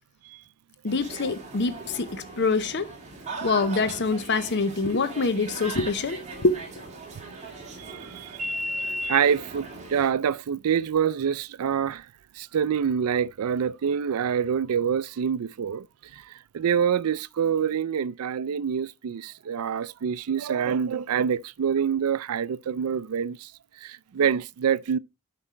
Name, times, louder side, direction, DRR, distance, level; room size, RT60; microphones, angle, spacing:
voice 1, 0.8-2.9 3.4-6.6, left 3 dB, 50° left, 0.7 m, -25 dB
sound 1, 0.9-10.1, right 1 dB, 30° right, 2.2 m, -37 dB
voice 2, 7.9-8.3 9.0-12.0 12.4-15.8 16.5-23.4 23.8-25.0, right 7 dB, 80° right, 0.4 m, -26 dB
8.3 x 5.3 x 4.4 m
head